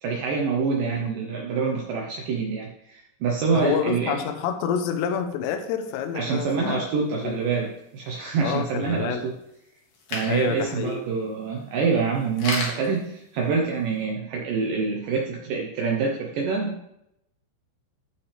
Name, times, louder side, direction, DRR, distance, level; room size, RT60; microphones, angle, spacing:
voice 1, 0.0-4.2 6.2-9.3 10.1-16.9, right 5 dB, 90° right, -1 dB, 1.9 m, -26 dB
voice 2, 3.5-6.8 7.2-7.4 8.4-9.3 10.3-11.0, left 8 dB, 80° left, 7 dB, 2.9 m, -28 dB
sound 1, 5.9-14.0, left 3 dB, 60° left, 3.5 m, -39 dB
15.0 x 5.8 x 3.3 m, 0.82 s
omnidirectional pair, 5.3 m